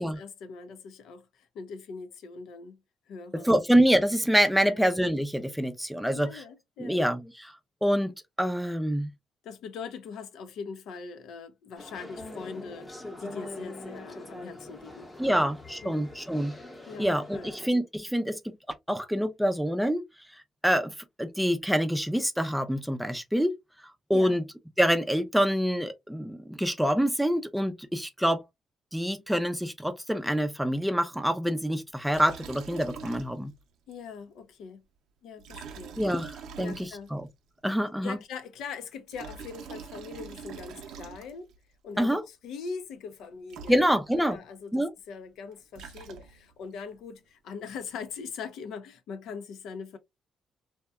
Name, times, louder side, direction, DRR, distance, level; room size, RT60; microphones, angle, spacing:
voice 1, 0.0-2.8 3.1-3.5 4.6-4.9 6.1-7.0 9.4-15.4 15.8-16.0 16.9-17.6 24.1-24.4 33.9-34.8 35.2-36.0 36.6-37.1 38.0-41.5 41.8-50.0, left 5 dB, 80° left, 0.5 m, -41 dB
voice 2, 3.4-6.4 6.8-7.5 7.8-8.1 8.4-9.1 15.2-16.5 17.0-18.6 18.9-20.0 20.6-23.6 24.1-24.4 24.8-28.4 28.9-33.5 36.0-37.3 37.6-38.2 42.0-42.2 43.7-44.4 44.7-44.9, equal, ahead, 0.4 m, -26 dB
sound 1, 11.8-17.7, left 2 dB, 20° left, 0.8 m, -43 dB
Liquid, 32.1-33.6 33.9-34.0 35.4-37.3 38.9-41.6 43.2-43.3 43.5-44.3 45.5-46.6, right 6 dB, 85° right, 0.6 m, -44 dB
2.7 x 2.2 x 2.2 m
cardioid pair, 90°, 0 cm